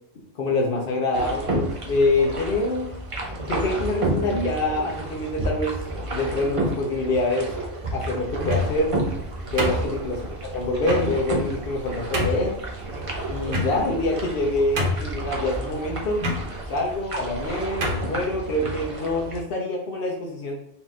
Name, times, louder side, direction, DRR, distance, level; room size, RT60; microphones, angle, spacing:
voice 1, 0.3-2.9 3.5-5.8 6.1-7.5 7.9-9.0 9.5-12.6 13.3-16.2 16.7-20.6, left 2 dB, 55° left, -2 dB, 0.8 m, -25 dB
sound 1, 1.1-19.4, right 1 dB, 35° right, 0.7 m, -31 dB
sound 2, 8.3-8.9 9.6-10.3 10.8-11.1 11.7-11.8 12.1-12.5 13.5-14.0 14.4-14.5 14.8-15.2 16.2-16.4 17.3-17.4 17.8-18.1, left 1 dB, 90° right, 1.4 m, -25 dB
4.2 x 3.0 x 3.6 m, 0.77 s
omnidirectional pair, 1.3 m